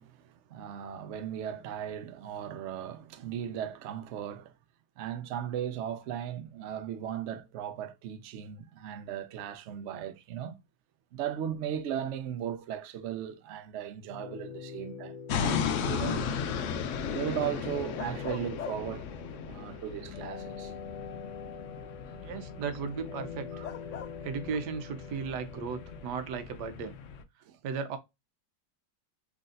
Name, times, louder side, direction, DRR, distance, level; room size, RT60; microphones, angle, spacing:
voice 1, 0.0-4.5 5.0-10.6 11.1-16.4 17.1-19.1 19.4-20.7 23.5-23.7 27.4-27.6, right 9 dB, 90° right, 0.6 m, -37 dB
sound 1, 14.1-26.1, left 6 dB, 65° left, 1.2 m, -45 dB
sound 2, 15.3-27.2, left 7 dB, 80° left, 0.6 m, -36 dB
voice 2, 22.1-23.5 24.2-27.0 27.6-28.0, right 5 dB, 70° right, 1.2 m, -36 dB
3.9 x 3.3 x 2.4 m
omnidirectional pair, 1.9 m